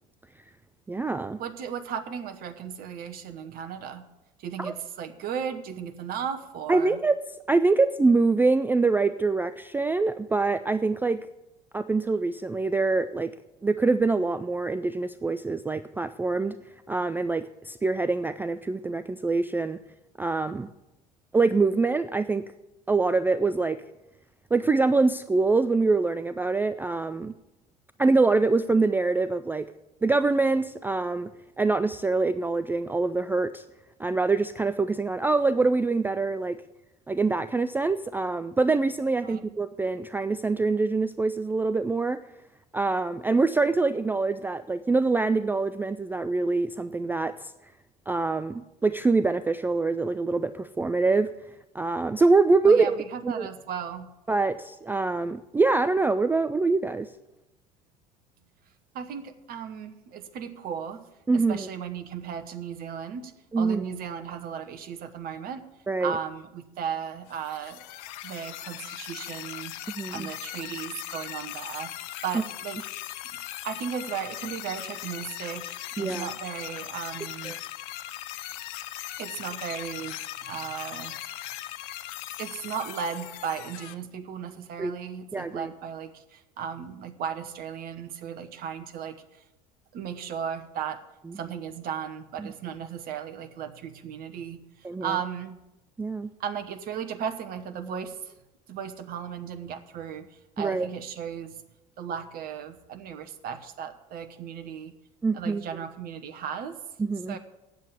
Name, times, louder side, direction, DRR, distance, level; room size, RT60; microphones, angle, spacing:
voice 1, 0.9-1.4 4.6-4.7 6.7-7.2 7.5-11.3 11.7-13.3 13.6-16.6 16.9-19.8 20.2-20.7 21.3-22.5 22.9-23.8 24.5-27.3 28.0-29.7 30.0-31.3 31.6-33.6 34.0-36.6 37.1-42.2 42.7-47.5 48.1-51.3 51.7-53.0 53.2-53.5 54.3-57.1 61.3-61.7 63.5-63.8 65.9-66.2 69.9-70.3 76.0-76.3 77.4-77.6 84.8-84.9 85.3-85.7 92.4-92.5 94.8-95.1 96.0-96.3 100.6-100.9 105.2-105.6 107.0-107.4, right 3 dB, 10° right, 12 dB, 0.3 m, -24 dB
voice 2, 1.4-4.1 4.4-7.0 39.2-39.4 52.6-54.1 58.9-61.0 61.3-65.6 66.0-67.9 68.2-69.7 70.1-72.8 73.6-77.6 79.2-81.2 82.4-89.4 89.9-91.0 91.3-95.6 96.4-98.3 98.7-101.6 102.0-104.9 105.3-106.8 107.3-107.4, right 7 dB, 45° right, 8 dB, 1.0 m, -36 dB
sound 1, 67.3-83.9, left 14 dB, 60° left, 0.6 m, -39 dB
9.4 x 7.5 x 8.3 m, 0.96 s
figure-of-eight pair, 65°, 21 cm